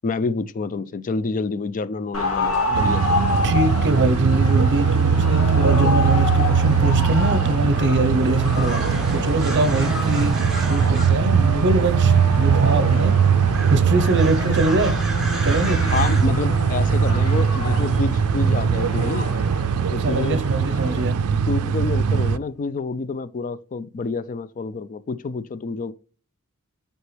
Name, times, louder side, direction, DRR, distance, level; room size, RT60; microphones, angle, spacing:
voice 1, 0.0-3.1 15.9-19.3 19.9-20.4 21.5-25.9, left 4 dB, 40° left, 0.4 m, -28 dB
sound 1, 2.1-21.0, left 2 dB, 75° left, 2.3 m, -30 dB
sound 2, 2.7-22.4, right 6 dB, 80° right, 0.4 m, -20 dB
voice 2, 3.4-13.1 13.7-14.9 15.4-15.8 20.0-21.1, right 2 dB, 55° right, 0.7 m, -23 dB
sound 3, 6.2-20.8, left 1 dB, ahead, 1.5 m, -33 dB
8.1 x 4.4 x 3.2 m
head